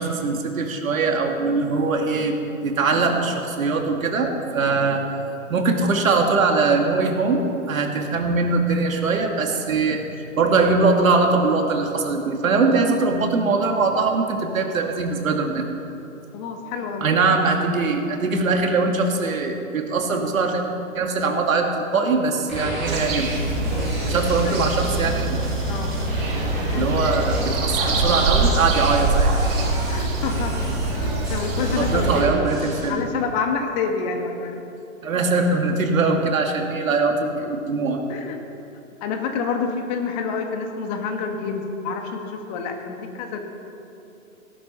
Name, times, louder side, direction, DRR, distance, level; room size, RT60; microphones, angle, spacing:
voice 1, 0.0-5.0 5.5-10.0 10.3-15.6 17.0-20.6 20.9-23.3 24.1-25.4 26.8-29.3 31.8-33.0 35.0-38.0, right 3 dB, 75° right, 2 dB, 2.6 m, -21 dB
voice 2, 16.3-17.1 24.4-24.6 25.7-25.9 26.6-27.3 29.9-30.5 30.9-32.4 32.9-34.6 38.1-38.4 39.0-43.5, left 5 dB, 30° left, 4 dB, 1.7 m, -28 dB
sound 1, 22.5-32.9, left 1 dB, ahead, 0.3 m, -31 dB
sound 2, 22.9-32.2, right 3 dB, 40° right, 4.0 m, -24 dB
17.5 x 11.5 x 5.8 m, 2.7 s
hypercardioid pair, 145°, 41 cm